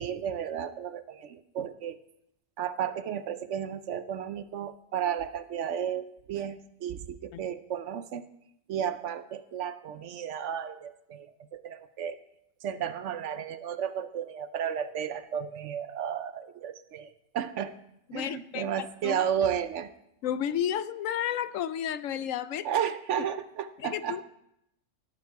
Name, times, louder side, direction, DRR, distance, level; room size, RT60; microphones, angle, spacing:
voice 1, 0.0-2.0 2.6-8.2 8.7-12.2 12.6-17.7 18.1-19.9 22.6-24.2, right 9 dB, 65° right, 12 dB, 0.9 m, -33 dB
voice 2, 18.1-19.2 20.2-22.7 23.2-23.3 23.8-24.2, left 10 dB, 75° left, 15 dB, 1.0 m, -32 dB
17.5 x 7.6 x 4.6 m, 0.79 s
omnidirectional pair, 1.4 m